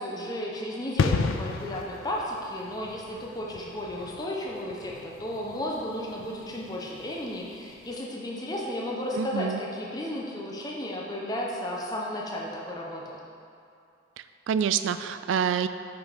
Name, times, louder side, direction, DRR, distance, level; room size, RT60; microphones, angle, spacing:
voice 1, 0.0-13.2, left 1 dB, 20° left, -3 dB, 0.8 m, -34 dB
sound 1, 1.0-7.5 7.7-7.9, left 4 dB, 85° left, 0.4 m, -33 dB
voice 2, 9.1-9.6 14.5-15.7, right 7 dB, 75° right, 12 dB, 0.3 m, -26 dB
6.0 x 5.2 x 5.1 m, 2.5 s
head